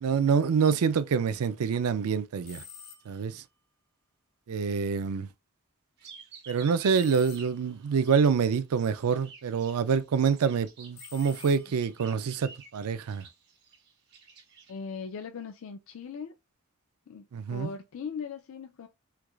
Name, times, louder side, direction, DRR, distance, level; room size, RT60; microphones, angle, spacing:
voice 1, 0.0-2.6 3.1-3.4 4.5-5.3 6.5-13.2 17.3-17.7, right 6 dB, 70° right, 0.4 m, -26 dB
sound 1, 2.4-3.3 6.9-7.9 10.9-12.1, left 6 dB, 75° left, 1.3 m, -49 dB
sound 2, 6.0-8.4 8.7-14.7, right 5 dB, 50° right, 1.3 m, -51 dB
voice 2, 14.7-16.4 17.1-18.9, left 6 dB, 60° left, 0.4 m, -39 dB
4.5 x 2.4 x 2.3 m
head